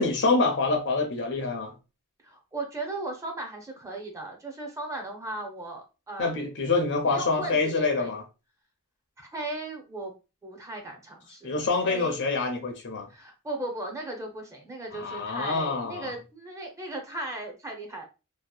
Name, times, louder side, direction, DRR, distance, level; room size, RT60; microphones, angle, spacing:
voice 1, 0.0-1.7 6.2-8.2 11.4-13.1 14.9-16.1, left 3 dB, 55° left, 0.5 m, -26 dB
voice 2, 2.2-6.3 7.0-8.1 9.2-10.1 10.4-11.5 11.8-12.2 13.1-18.0, right 2 dB, 15° right, 0.5 m, -37 dB
2.7 x 2.0 x 2.2 m
head